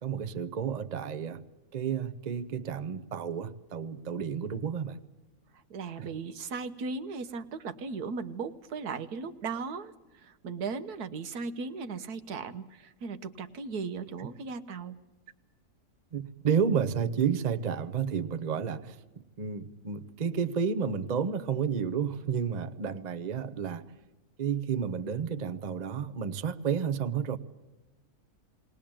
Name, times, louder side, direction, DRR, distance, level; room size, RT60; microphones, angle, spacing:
voice 1, 0.0-1.4 1.7-5.0 6.0-6.1 14.2-14.3 16.1-19.0 19.4-23.8 24.4-27.4, right 7 dB, 35° right, 12 dB, 0.7 m, -31 dB
voice 2, 5.7-15.0, right 4 dB, 85° right, 10 dB, 1.5 m, -37 dB
20.5 x 19.5 x 8.8 m, 1.1 s
omnidirectional pair, 1.6 m